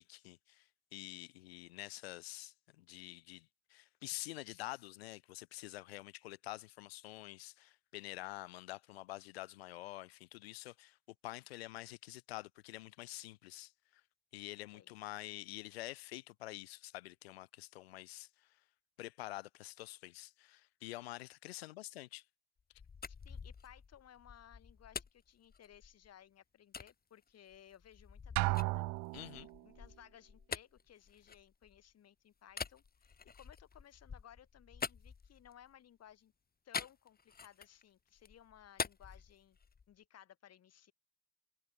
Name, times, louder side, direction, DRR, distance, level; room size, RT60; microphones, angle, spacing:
voice 1, 0.0-11.0 11.2-14.0 14.3-18.6 19.0-22.2 29.1-29.5, left 17 dB, 85° left, 2.2 m, -48 dB
voice 2, 14.5-15.0 23.1-28.9 29.6-36.3 36.6-39.6 39.9-40.9, left 10 dB, 55° left, 7.1 m, -60 dB
sound 1, 22.6-26.1 26.7-26.9 27.5-31.9 32.5-35.7 36.7-37.8 38.2-39.9, left 6 dB, 30° left, 1.7 m, -46 dB
Drum, 28.4-29.6, right 24 dB, 70° right, 0.7 m, -34 dB
hypercardioid pair, 55°, 30 cm